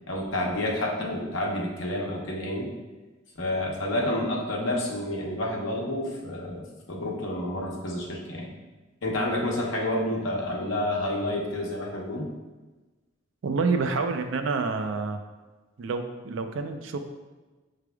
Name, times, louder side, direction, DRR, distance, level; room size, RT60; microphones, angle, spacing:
voice 1, 0.1-2.7 3.4-8.5 9.0-12.3, left 1 dB, 90° left, -2 dB, 0.9 m, -29 dB
voice 2, 13.4-15.2 15.8-17.0, right 4 dB, 85° right, 7 dB, 0.4 m, -28 dB
5.9 x 3.3 x 2.3 m, 1.2 s
head